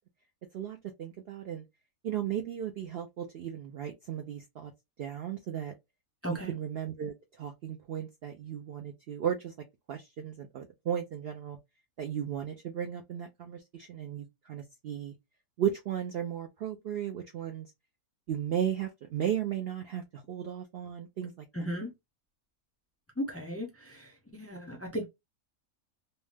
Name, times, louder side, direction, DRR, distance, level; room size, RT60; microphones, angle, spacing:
voice 1, 0.5-1.6 2.0-4.7 5.0-5.7 6.3-9.5 9.9-11.6 12.0-15.1 15.6-17.7 18.3-21.4, right 9 dB, 85° right, 0.5 m, -35 dB
voice 2, 6.2-6.6 21.5-21.9 23.2-25.1, equal, 15° left, 0.4 m, -36 dB
2.7 x 2.0 x 3.3 m
omnidirectional pair, 1.6 m